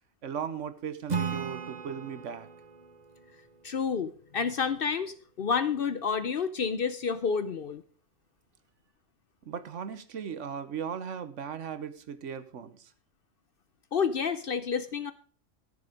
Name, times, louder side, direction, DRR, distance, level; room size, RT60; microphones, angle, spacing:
voice 1, 0.2-2.5 9.5-12.9, right 7 dB, 70° right, 13 dB, 1.2 m, -37 dB
Acoustic guitar / Strum, 1.1-4.5, right 6 dB, 35° right, 1.1 m, -37 dB
voice 2, 3.6-7.8 13.9-15.1, left 6 dB, 55° left, 13 dB, 0.7 m, -29 dB
13.5 x 7.1 x 5.1 m, 0.43 s
omnidirectional pair, 1.4 m